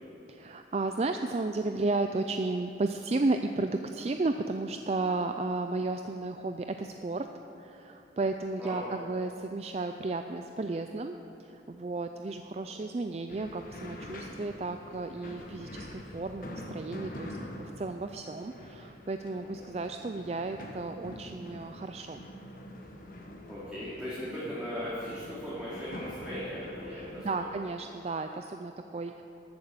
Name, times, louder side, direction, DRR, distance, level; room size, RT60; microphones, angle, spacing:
voice 1, 0.3-7.3 7.6-22.2 26.9-29.2, right 3 dB, 35° right, 7 dB, 0.4 m, -33 dB
sound 1, 13.3-27.2, left 1 dB, 50° left, 1.4 m, -45 dB
voice 2, 23.5-27.5, equal, 5° right, -10 dB, 2.5 m, -38 dB
14.0 x 8.8 x 6.7 m, 2.9 s
head